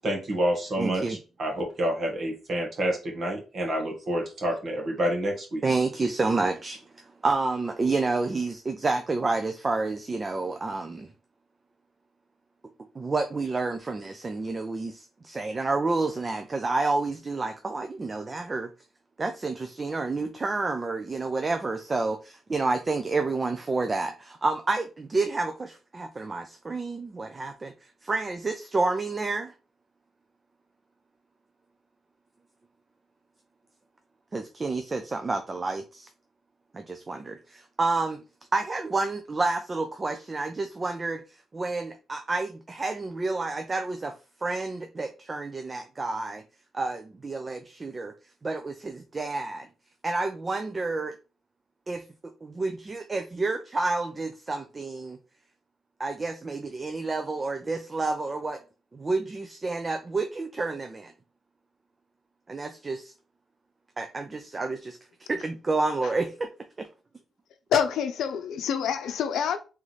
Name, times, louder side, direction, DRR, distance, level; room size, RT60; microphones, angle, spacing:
voice 1, 0.0-5.6, equal, 40° right, 1.5 m, -28 dB
voice 2, 0.8-1.2 5.6-6.8 7.2-11.1 13.0-18.7 19.2-27.7 28.0-29.5 34.3-36.1 36.7-38.2 38.5-41.2 41.5-44.1 44.4-46.4 46.7-48.1 48.4-49.7 50.0-51.1 51.9-52.0 52.4-55.2 56.0-58.6 58.9-61.1 62.5-63.1 64.0-65.0 65.3-66.5 66.8-66.9, right 3 dB, 25° right, 0.4 m, -29 dB
voice 3, 67.7-69.6, left 8 dB, 90° left, 0.6 m, -26 dB
3.6 x 3.1 x 4.0 m
cardioid pair, 150°, 0 cm